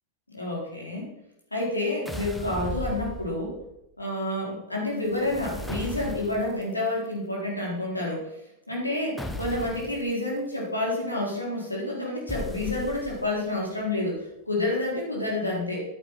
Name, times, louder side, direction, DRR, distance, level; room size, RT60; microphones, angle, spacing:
voice 1, 0.3-1.1 1.5-3.5 4.0-8.2 8.7-15.8, left 2 dB, 85° left, -2 dB, 4.0 m, -29 dB
sound 1, 2.0-3.7 5.1-6.6 9.2-10.0 12.3-13.4, equal, 5° left, 1.2 m, -36 dB
11.0 x 9.2 x 4.8 m, 0.83 s
figure-of-eight pair, 90°, 0 cm